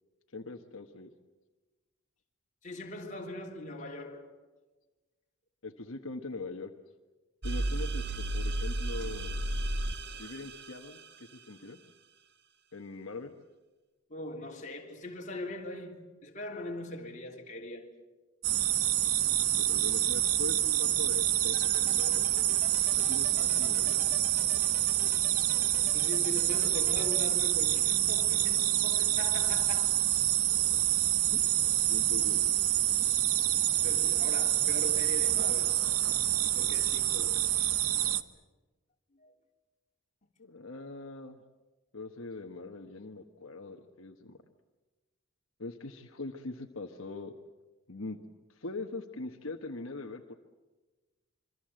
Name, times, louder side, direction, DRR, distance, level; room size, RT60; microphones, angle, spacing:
voice 1, 0.3-1.1 5.6-6.7 7.4-9.4 10.2-11.8 12.7-13.3 19.7-22.2 23.1-24.0 31.3-31.4 31.9-32.6 40.4-41.4 41.9-44.4 45.6-47.3 47.9-48.2 48.5-50.3, left 3 dB, 65° left, 1.3 m, -42 dB
voice 2, 2.6-4.4 14.1-18.0 22.8-23.0 25.9-30.0 33.8-35.9 36.4-37.7 39.1-39.3, left 1 dB, 35° left, 3.4 m, -41 dB
sound 1, 7.4-11.0, right 1 dB, 50° right, 1.4 m, -33 dB
sound 2, 18.4-38.2, right 12 dB, 85° right, 1.1 m, -27 dB
sound 3, 21.5-27.2, right 1 dB, 10° right, 3.5 m, -47 dB
26.5 x 25.0 x 7.7 m
head